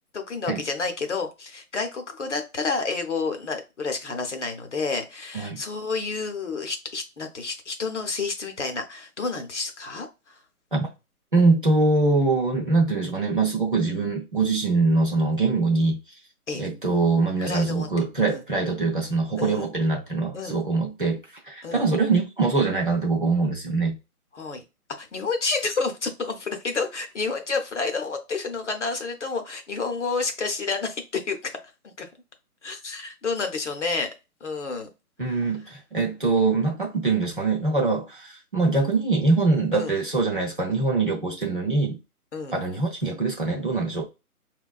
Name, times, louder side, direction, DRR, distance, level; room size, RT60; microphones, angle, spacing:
voice 1, 0.1-10.4 16.5-16.6 17.4-17.9 18.3-18.4 19.3-19.7 20.3-20.6 21.6-21.8 24.3-24.6 25.0-31.5 31.8-32.1 32.6-34.1 34.4-34.9 39.7-39.9 42.3-42.6, left 4 dB, 50° left, 0.7 m, -30 dB
voice 2, 11.3-16.0 16.6-24.0 35.2-42.0 42.5-44.0, right 3 dB, 35° right, 0.6 m, -23 dB
5.2 x 2.2 x 2.3 m
hypercardioid pair, 170°, 46 cm